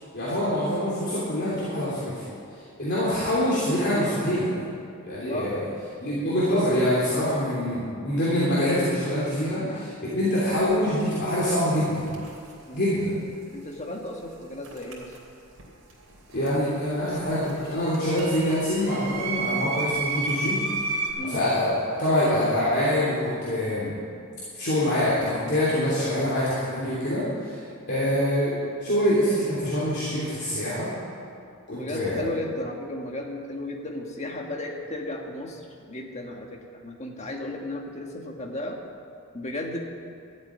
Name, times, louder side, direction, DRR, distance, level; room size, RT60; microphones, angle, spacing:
voice 1, 0.1-4.5 5.0-5.6 6.0-12.0 12.7-13.1 16.3-20.6 21.2-24.0 24.5-28.5 28.8-30.9 31.7-32.3, left 1 dB, 50° left, -9 dB, 3.2 m, -25 dB
voice 2, 5.2-5.6 9.5-9.9 12.7-12.8 13.5-15.2 21.2-21.4 28.0-28.2 31.7-38.8 39.3-39.8, left 1 dB, 30° left, 1 dB, 1.5 m, -35 dB
sound 1, 10.6-10.7 12.0-12.5 14.6-15.6 15.9-21.1, right 3 dB, 80° right, 3.3 m, -32 dB
13.0 x 8.1 x 9.5 m, 2.4 s
head